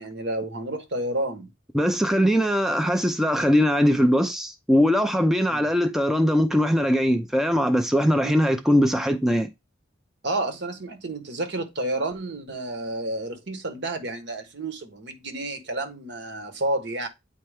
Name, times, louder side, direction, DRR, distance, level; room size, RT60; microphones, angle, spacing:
voice 1, 0.0-1.5 5.5-5.7 8.2-8.4 10.2-17.1, right 2 dB, 60° right, 1.2 m, -30 dB
voice 2, 1.7-9.5, equal, ahead, 0.4 m, -21 dB
8.6 x 4.4 x 3.4 m
head